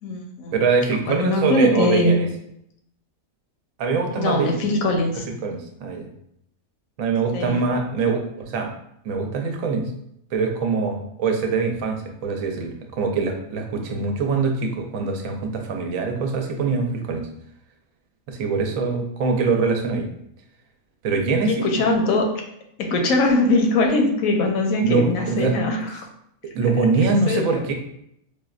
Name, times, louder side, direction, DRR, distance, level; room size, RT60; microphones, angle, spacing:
voice 1, 0.0-0.5 1.1-2.1 4.2-5.3 7.3-7.6 21.5-22.3 22.8-26.0 27.0-27.6, left 2 dB, 80° left, 2 dB, 1.1 m, -21 dB
voice 2, 0.5-2.3 3.8-4.5 5.4-6.1 7.0-8.7 9.0-9.9 10.3-17.3 18.3-20.1 21.0-21.8 24.8-25.5 26.5-27.7, right 4 dB, 80° right, 3 dB, 1.0 m, -23 dB
4.7 x 2.1 x 2.3 m, 0.75 s
omnidirectional pair, 1.4 m